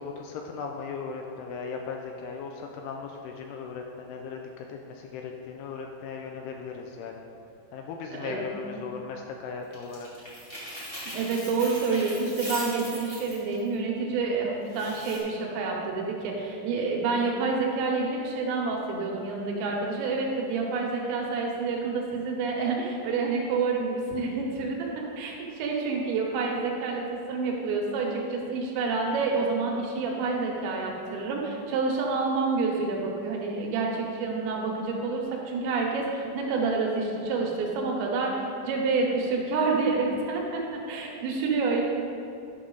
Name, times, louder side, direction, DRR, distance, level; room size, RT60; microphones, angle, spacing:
voice 1, 0.0-7.1 7.7-10.1, left 5 dB, 80° left, 2 dB, 2.4 m, -37 dB
voice 2, 8.1-8.8 11.1-41.8, right 4 dB, 85° right, -1 dB, 3.4 m, -28 dB
sound 1, 9.7-13.7 14.7-15.2, equal, 60° left, 0.5 m, -39 dB
11.0 x 6.1 x 3.9 m, 2.6 s
omnidirectional pair, 5.1 m